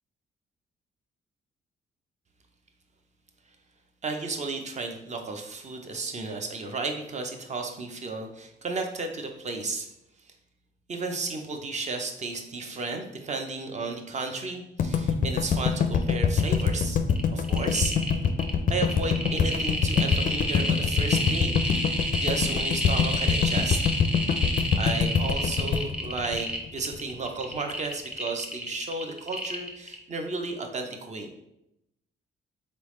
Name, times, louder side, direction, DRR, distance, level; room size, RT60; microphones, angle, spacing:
voice 1, 4.0-9.9 10.9-17.0 17.3-17.9 18.7-21.6 22.2-23.8 24.8-31.3, right 3 dB, 35° right, 5 dB, 0.7 m, -33 dB
sound 1, 14.8-27.0, left 6 dB, 45° left, 0.4 m, -24 dB
sound 2, 16.1-16.2 16.4-16.8 17.1-30.2 30.4-30.5, equal, 5° right, 0.8 m, -30 dB
4.0 x 3.4 x 3.1 m, 0.84 s
cardioid pair, 90°, 20 cm